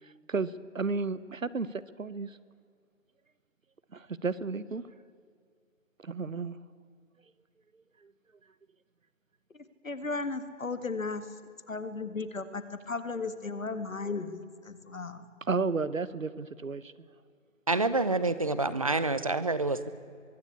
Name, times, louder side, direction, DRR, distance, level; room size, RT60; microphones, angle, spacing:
voice 1, 0.0-2.4 3.9-4.8 6.0-6.6 8.0-8.1 15.5-16.9, right 4 dB, 80° right, 17 dB, 1.2 m, -33 dB
voice 2, 9.8-11.2 11.7-15.2, left 4 dB, 80° left, 12 dB, 2.0 m, -35 dB
voice 3, 17.7-19.9, right 3 dB, 25° right, 14 dB, 0.6 m, -27 dB
23.0 x 16.0 x 8.4 m, 2.2 s
figure-of-eight pair, 155°, 39 cm